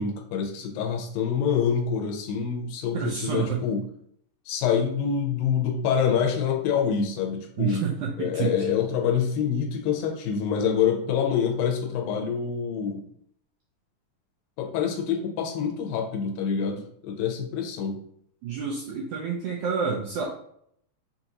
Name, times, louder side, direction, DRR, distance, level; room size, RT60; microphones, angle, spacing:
voice 1, 0.0-3.8 4.5-7.8 8.2-13.0 14.6-18.0, left 7 dB, 80° left, 3 dB, 2.4 m, -26 dB
voice 2, 2.9-3.6 7.6-8.8 18.4-20.2, right 6 dB, 85° right, -3 dB, 1.7 m, -29 dB
5.8 x 2.6 x 2.9 m, 0.68 s
omnidirectional pair, 4.1 m